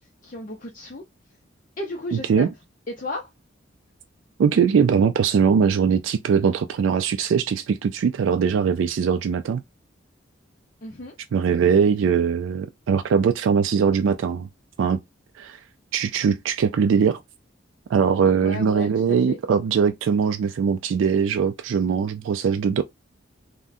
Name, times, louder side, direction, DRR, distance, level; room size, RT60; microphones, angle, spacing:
voice 1, 0.2-1.0 1.8-2.5 2.9-3.3 10.8-11.1 18.3-19.4, left 1 dB, 45° left, 0.5 m, -34 dB
voice 2, 2.1-2.5 4.4-9.6 11.3-14.5 14.8-15.0 15.4-15.6 15.9-17.2 17.9-22.8, right 6 dB, 80° right, 0.3 m, -21 dB
3.5 x 2.1 x 2.6 m
head